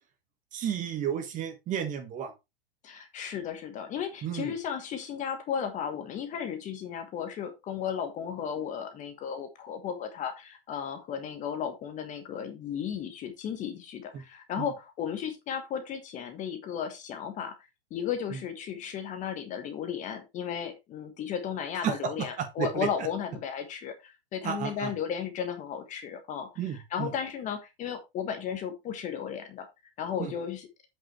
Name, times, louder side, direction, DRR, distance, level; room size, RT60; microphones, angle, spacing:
voice 1, 0.5-2.3 4.2-4.5 14.1-14.2 14.6-14.7 18.3-18.4 21.8-22.9 24.4-24.9 26.6-27.1 30.2-30.3, right 9 dB, 25° right, 7 dB, 1.7 m, -32 dB
voice 2, 2.8-17.5 17.9-29.7 30.0-30.7, left 8 dB, 25° left, 7 dB, 1.4 m, -35 dB
8.0 x 7.3 x 3.2 m, 0.23 s
hypercardioid pair, 145°, 30 cm